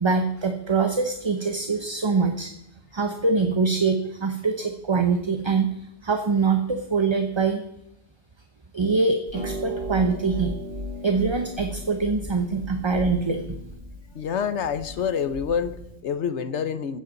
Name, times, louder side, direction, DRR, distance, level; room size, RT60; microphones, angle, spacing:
voice 1, 0.0-2.5 2.9-7.6 8.7-10.5 11.0-13.4, right 4 dB, 25° right, 6 dB, 0.8 m, -24 dB
Harp, 9.3-16.0, equal, 65° right, 2.8 m, -36 dB
voice 2, 14.1-17.0, left 7 dB, 85° left, 13 dB, 1.2 m, -27 dB
15.0 x 10.5 x 4.0 m, 0.81 s
omnidirectional pair, 1.1 m